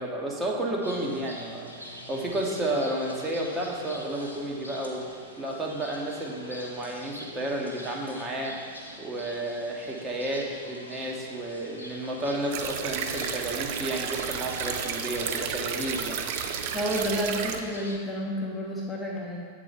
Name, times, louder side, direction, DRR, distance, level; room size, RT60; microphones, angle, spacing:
voice 1, 0.0-1.7 2.1-5.1 5.4-8.6 9.0-16.2, right 1 dB, 15° right, -2 dB, 1.0 m, -31 dB
sound 1, 0.8-18.0, left 1 dB, 85° left, 0.7 m, -43 dB
sound 2, 12.5-17.6, right 8 dB, 50° right, 0.4 m, -32 dB
voice 2, 16.7-19.5, equal, 10° left, -4 dB, 0.8 m, -30 dB
7.8 x 3.9 x 4.7 m, 2.1 s
figure-of-eight pair, 90°, 0 cm